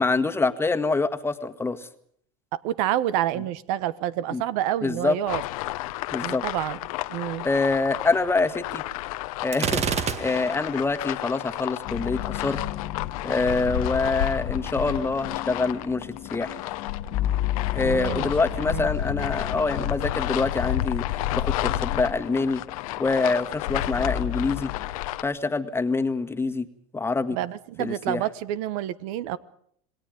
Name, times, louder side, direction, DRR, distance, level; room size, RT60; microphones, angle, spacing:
voice 1, 0.0-1.9 4.3-4.4 4.8-5.2 6.1-6.4 7.4-8.8 9.4-9.8 10.2-12.6 13.2-16.6 17.7-21.0 21.3-22.6 23.0-24.7 25.2-26.7 26.9-27.4 27.8-28.2, left 3 dB, 15° left, 6 dB, 1.7 m, -25 dB
voice 2, 2.5-5.4 6.2-6.8 7.1-7.5 17.8-18.3 18.7-18.9 27.3-29.4, right 12 dB, 70° right, 16 dB, 1.1 m, -28 dB
sound 1, 5.3-25.2, left 14 dB, 80° left, 1.1 m, -31 dB
Gunshot gunfire, 9.5-10.8, right 7 dB, 35° right, 1.9 m, -27 dB
sound 2, 11.8-24.9, left 12 dB, 55° left, 1.6 m, -35 dB
27.5 x 20.0 x 5.2 m, 0.64 s
supercardioid pair, 105°, 18 cm